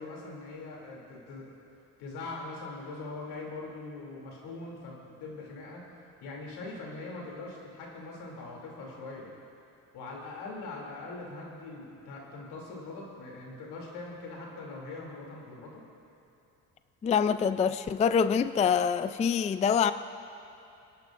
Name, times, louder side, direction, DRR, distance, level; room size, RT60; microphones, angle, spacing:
voice 1, 0.0-1.5 2.0-5.9 6.2-9.3 9.9-15.8, left 3 dB, 80° left, -2 dB, 3.0 m, -42 dB
voice 2, 17.0-19.9, left 7 dB, 20° left, 12 dB, 0.3 m, -25 dB
26.0 x 11.0 x 2.6 m, 2.9 s
supercardioid pair, 85°, 39 cm